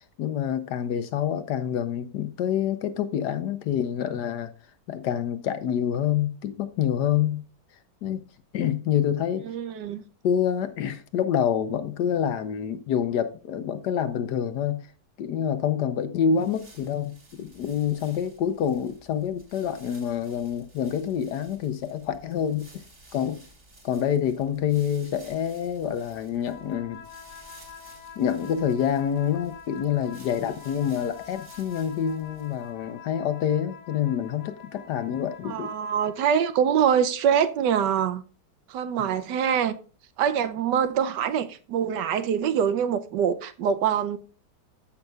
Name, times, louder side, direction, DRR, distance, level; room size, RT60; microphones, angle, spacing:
voice 1, 0.2-4.5 4.9-7.4 8.0-8.2 8.5-9.5 10.2-14.8 15.2-22.7 23.1-23.4 23.8-27.0 28.2-35.7, left 9 dB, 70° left, 1.2 m, -27 dB
voice 2, 9.4-10.0 35.4-38.2 38.7-39.8 40.2-44.2, right 8 dB, 75° right, 1.2 m, -24 dB
sound 1, 16.3-32.8, right 2 dB, 40° right, 2.5 m, -54 dB
sound 2, 26.4-36.6, left 7 dB, 30° left, 0.9 m, -46 dB
14.0 x 5.9 x 2.3 m
omnidirectional pair, 2.0 m